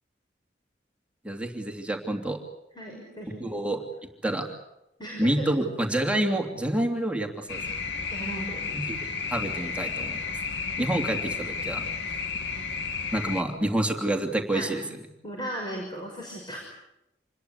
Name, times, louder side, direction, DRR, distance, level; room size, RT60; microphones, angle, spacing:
voice 1, 1.2-2.4 3.4-3.8 4.2-4.5 5.2-7.6 8.7-10.2 10.8-11.8 13.1-14.8, right 1 dB, 5° right, 2 dB, 2.9 m, -28 dB
voice 2, 2.8-3.7 5.0-5.5 8.1-8.8 10.8-11.2 14.5-14.8 15.2-16.6, right 1 dB, 25° left, 0 dB, 5.9 m, -37 dB
sound 1, 7.5-13.4, left 5 dB, 85° left, 2.5 m, -32 dB
27.5 x 21.0 x 8.3 m, 0.88 s
head